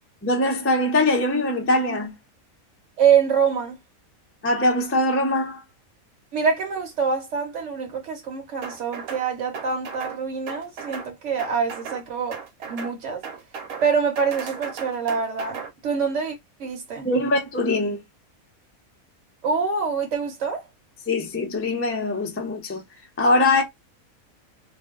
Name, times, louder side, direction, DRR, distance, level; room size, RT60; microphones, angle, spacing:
voice 1, 0.2-2.1 4.4-5.6 17.0-18.0 21.1-22.8 23.2-23.6, left 2 dB, 20° left, 0.3 m, -22 dB
voice 2, 3.0-3.7 6.3-12.4 12.7-13.2 13.8-17.1 19.4-20.7, right 6 dB, 65° right, 1.0 m, -25 dB
sound 1, 8.6-9.3 9.5-10.2 10.5-11.1 11.4-12.0 12.3-13.0 13.2-13.9 14.2-15.7, right 6 dB, 90° right, 1.2 m, -36 dB
2.5 x 2.2 x 3.5 m
omnidirectional pair, 1.5 m